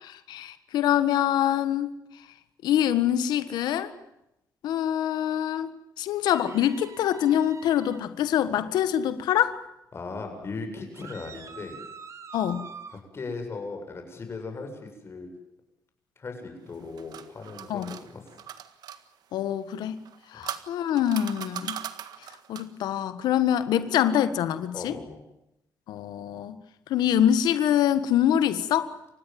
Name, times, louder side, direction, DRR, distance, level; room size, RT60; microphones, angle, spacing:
voice 1, 0.0-1.9 2.6-3.9 4.6-5.7 6.0-9.5 12.3-12.6 17.7-17.9 19.3-20.0 20.3-21.8 22.5-25.0 25.9-26.6 26.9-28.9, left 10 dB, 90° left, 12 dB, 1.5 m, -25 dB
sound 1, 6.2-8.0 10.9-13.0, right 5 dB, 45° right, 2.7 m, -45 dB
voice 2, 9.9-11.8 12.9-15.3 16.2-18.2 20.3-20.5 24.7-25.2, left 3 dB, 35° left, 4 dB, 7.8 m, -38 dB
sound 2, 16.7-19.0 20.0-22.8, right 10 dB, 75° right, 1.7 m, -39 dB
29.0 x 16.5 x 9.4 m, 0.85 s
cardioid pair, 105°, 7 cm